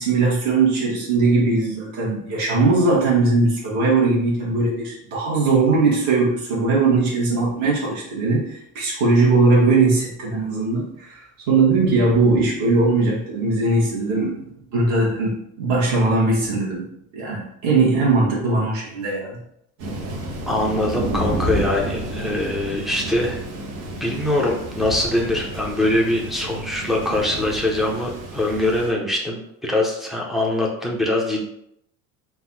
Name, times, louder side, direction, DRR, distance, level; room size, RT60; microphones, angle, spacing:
voice 1, 0.0-14.3 14.7-16.8 17.1-19.4, right 3 dB, 50° right, -5 dB, 1.6 m, -19 dB
Thunder, 19.8-28.9, right 1 dB, 75° right, 1.1 m, -30 dB
voice 2, 20.5-23.4 24.0-31.5, left 1 dB, ahead, -1 dB, 0.4 m, -23 dB
3.9 x 2.5 x 4.0 m, 0.75 s
cardioid pair, 170°, 35 cm